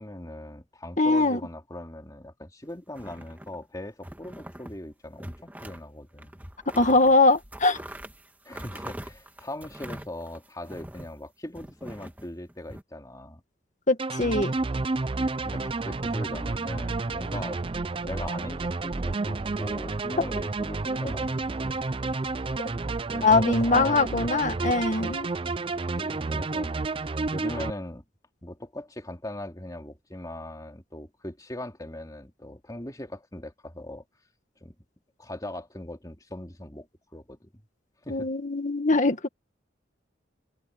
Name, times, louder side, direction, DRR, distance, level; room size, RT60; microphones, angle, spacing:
voice 1, 0.0-6.5 8.4-13.4 15.4-17.6 18.0-21.9 22.4-22.6 23.1-24.5 26.0-28.0 28.4-34.0 34.6-34.7 35.2-37.5 38.0-38.3, left 1 dB, 20° left, 2.9 m, -40 dB
voice 2, 1.0-1.4 6.8-7.8 13.9-14.5 23.2-25.3 38.1-39.3, left 3 dB, 40° left, 1.9 m, -22 dB
sound 1, 2.9-3.6 4.0-4.8 5.1-5.8 6.2-11.2 11.5-12.8, right 1 dB, 10° right, 1.7 m, -43 dB
sound 2, 14.0-27.7, right 3 dB, 30° right, 0.5 m, -30 dB
head